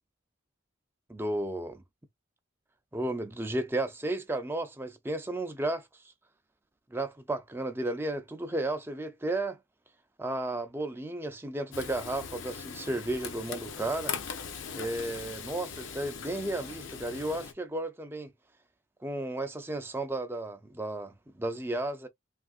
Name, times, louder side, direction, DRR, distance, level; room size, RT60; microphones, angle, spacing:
voice 1, 1.1-1.8 2.9-5.8 6.9-9.6 10.2-14.1 14.7-18.3 19.0-22.1, right 1 dB, 10° right, 0.4 m, -33 dB
Frying (food), 11.7-17.5, left 6 dB, 65° left, 0.6 m, -40 dB
3.4 x 2.4 x 2.4 m
head